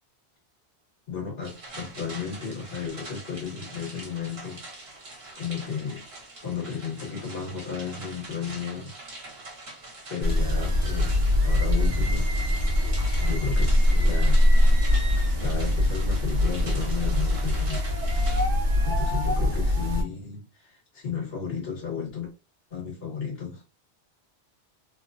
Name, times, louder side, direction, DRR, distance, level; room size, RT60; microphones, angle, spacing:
voice 1, 1.1-4.6 5.4-6.0 6.4-9.0 10.1-12.3 13.2-14.4 15.4-17.9 18.8-22.3 22.7-23.8, left 6 dB, 65° left, 1.5 m, -34 dB
sound 1, 1.4-18.5, right 2 dB, 65° right, 1.3 m, -43 dB
sound 2, 10.2-20.0, left 1 dB, 50° right, 1.0 m, -22 dB
3.1 x 2.1 x 2.5 m
omnidirectional pair, 1.1 m